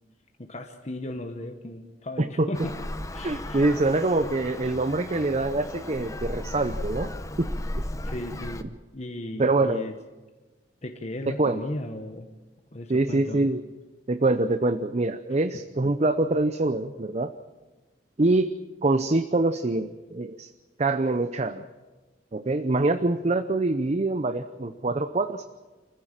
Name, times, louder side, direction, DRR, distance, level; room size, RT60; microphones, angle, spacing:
voice 1, 0.4-2.7 3.1-3.6 8.0-9.9 10.8-12.3 12.7-13.5, left 1 dB, 40° left, 4 dB, 1.1 m, -36 dB
voice 2, 2.2-2.5 3.2-7.1 7.4-7.5 8.6-8.7 9.4-9.9 11.3-11.6 12.9-13.6 14.1-17.3 18.2-18.5 18.8-20.5 20.8-21.6 22.3-25.4, right 2 dB, 40° right, 10 dB, 0.6 m, -25 dB
Traffic noise roadway noise, 2.5-8.6, left 1 dB, 20° left, 0.9 m, -35 dB
26.5 x 15.0 x 7.4 m, 1.3 s
head